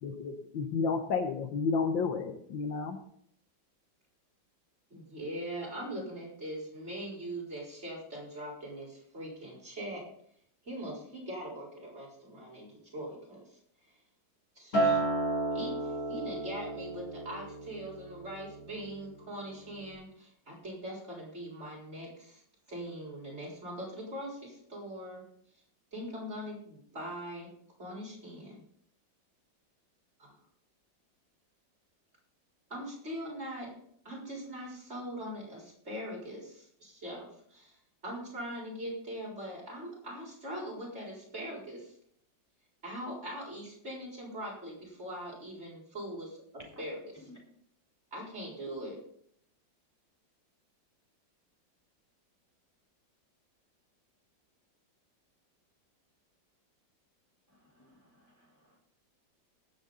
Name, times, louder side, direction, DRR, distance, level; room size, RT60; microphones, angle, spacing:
voice 1, 0.0-3.0, left 5 dB, 85° left, 7 dB, 1.9 m, -31 dB
voice 2, 4.9-10.0 10.7-13.4 14.6-15.0 15.5-15.8 16.1-22.4 22.7-25.2 25.9-27.5 27.8-28.6 30.2-30.3 32.7-33.7 34.0-37.7 38.0-41.9 42.8-46.3 46.8-47.2 48.1-49.0, equal, 35° right, -3 dB, 4.5 m, -41 dB
Acoustic guitar, 14.7-19.2 19.5-19.9, right 2 dB, 50° left, 4.2 m, -33 dB
voice 3, 57.7-58.8, left 1 dB, 10° left, -3 dB, 4.2 m, -58 dB
20.0 x 8.0 x 4.0 m, 0.66 s
omnidirectional pair, 2.0 m